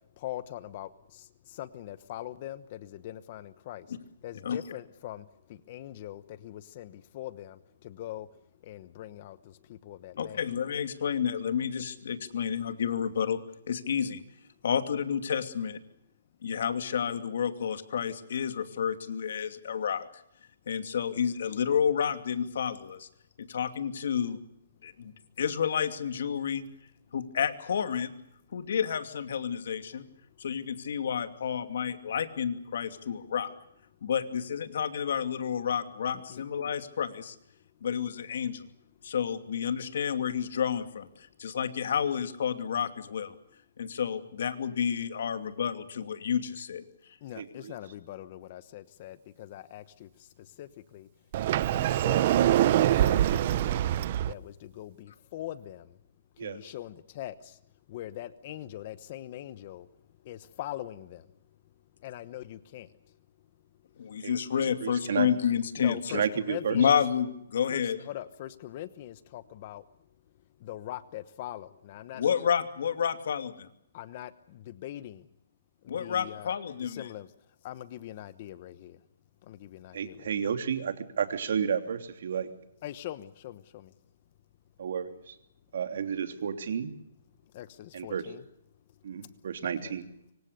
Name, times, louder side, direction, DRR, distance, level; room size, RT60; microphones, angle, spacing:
voice 1, 0.2-3.9 4.2-8.3 8.6-10.5 36.3-36.4 47.2-50.1 50.6-51.1 51.5-52.4 52.7-53.9 54.3-55.9 56.4-57.6 57.9-59.9 60.2-61.2 62.0-62.9 65.8-66.9 67.7-69.8 70.6-72.2 73.9-75.2 75.8-76.5 76.8-77.3 77.6-79.0 79.5-80.4 82.8-83.9 87.5-88.4 89.6-89.9, left 13 dB, 35° left, 15 dB, 1.0 m, -42 dB
voice 2, 10.2-13.4 13.7-14.2 14.6-15.8 16.4-20.1 20.7-23.1 23.4-24.4 24.8-26.6 27.1-28.1 28.5-30.0 30.4-33.5 34.0-37.4 37.8-38.6 39.0-43.4 43.8-47.2 64.0-66.2 66.7-68.0 72.1-73.7 75.9-77.1, left 7 dB, 60° left, 9 dB, 2.6 m, -30 dB
voice 3, 47.4-47.7 56.4-56.6 64.2-65.3 66.1-66.8 79.9-82.5 84.8-85.3 85.7-86.9 87.9-88.3 89.0-90.1, right 7 dB, 55° right, 8 dB, 3.1 m, -32 dB
Sliding door, 51.3-54.3, right 12 dB, 35° right, 0.9 m, -24 dB
25.5 x 25.0 x 6.8 m, 0.78 s
hypercardioid pair, 170°, 0 cm